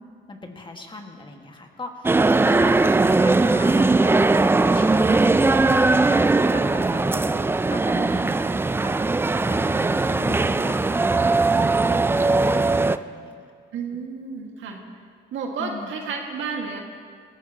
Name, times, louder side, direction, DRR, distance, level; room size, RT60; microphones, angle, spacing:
voice 1, 0.3-4.3 4.6-5.5 5.9-8.4 8.8-9.1 9.4-13.5 15.6-15.9, left 2 dB, 25° left, 2 dB, 1.7 m, -38 dB
sound 1, 2.0-13.0, right 3 dB, 10° right, 0.3 m, -19 dB
voice 2, 2.5-2.9 13.7-14.8 15.3-16.8, right 5 dB, 75° right, 1 dB, 1.8 m, -32 dB
20.0 x 15.0 x 2.9 m, 2.1 s
cardioid pair, 90°, 20 cm